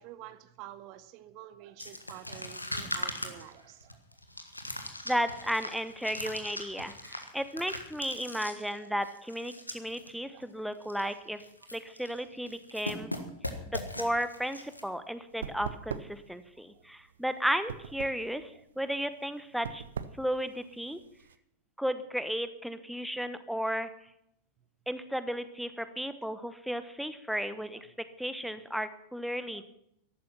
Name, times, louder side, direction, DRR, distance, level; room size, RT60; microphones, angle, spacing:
voice 1, 0.0-4.0 8.8-8.9 10.3-10.4 13.2-13.3 16.7-16.8 29.5-29.6, right 13 dB, 40° right, 13 dB, 1.0 m, -49 dB
sound 1, 1.8-10.1 10.4-10.5 10.8-11.1 11.4-12.2 12.5-14.8, left 1 dB, 85° left, 1.5 m, -40 dB
voice 2, 5.0-11.4 11.7-13.1 13.6-19.8 20.2-21.0 21.8-23.9 24.9-27.9 28.2-29.6, equal, ahead, 12 dB, 1.0 m, -34 dB
sound 2, 14.2-21.4, right 7 dB, 65° right, 0.7 m, -43 dB
14.0 x 11.5 x 5.9 m, 0.76 s
figure-of-eight pair, 90°, 0 cm